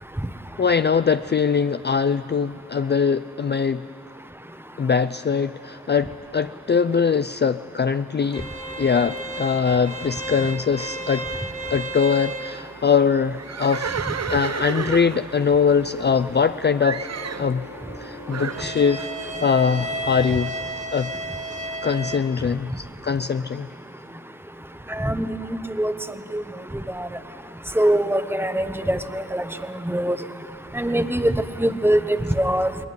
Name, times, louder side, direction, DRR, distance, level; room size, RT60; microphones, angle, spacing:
voice 1, 0.6-3.8 4.8-8.5 8.8-11.3 11.7-17.1 17.4-17.7 18.0-20.5 20.9-21.1 21.8-23.7, left 6 dB, 35° left, 11 dB, 0.4 m, -22 dB
sound 1, 8.3-22.2, right 1 dB, 25° right, 1.5 m, -34 dB
Livestock farm animals working animals, 13.4-16.5 16.8-17.5 18.3-18.7, right 6 dB, 60° right, 0.8 m, -31 dB
sound 2, 13.5-22.4, left 1 dB, 80° left, 6.1 m, -43 dB
voice 2, 25.0-25.9 26.3-26.4 27.0-27.1 27.8-29.4 29.9-30.2 30.7-31.3 31.6-32.0 32.4-32.7, right 1 dB, 5° right, 9 dB, 1.2 m, -22 dB
21.0 x 20.0 x 9.5 m, 2.8 s
cardioid pair, 50°, 30 cm